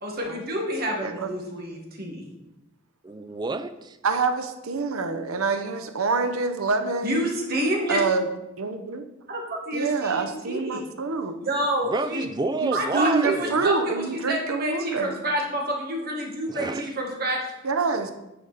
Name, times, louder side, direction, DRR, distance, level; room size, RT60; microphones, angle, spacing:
voice 1, 0.0-2.3 7.0-8.0 9.3-10.9 11.4-12.2 12.7-17.5, right 1 dB, 45° right, 1.7 m, -28 dB
voice 2, 1.0-1.3 4.0-7.2 7.9-8.3 8.6-9.0 9.7-11.4 12.2-12.3 12.6-15.2 17.6-18.1, right 4 dB, 85° right, 0.8 m, -26 dB
voice 3, 3.0-4.0 11.8-13.7 16.5-16.9, right 3 dB, 20° right, 0.3 m, -29 dB
9.5 x 5.1 x 4.1 m
head